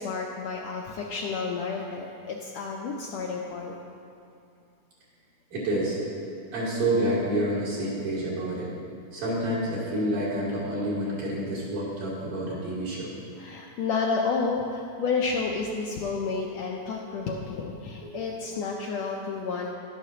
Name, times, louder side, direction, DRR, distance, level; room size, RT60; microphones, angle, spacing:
voice 1, 0.0-3.7 13.4-19.7, left 4 dB, 75° left, -2 dB, 1.6 m, -30 dB
voice 2, 5.5-6.0 6.5-8.7 9.1-13.1 18.1-18.2, right 1 dB, 80° right, -8 dB, 4.2 m, -28 dB
12.0 x 11.0 x 2.9 m, 2.5 s
omnidirectional pair, 3.6 m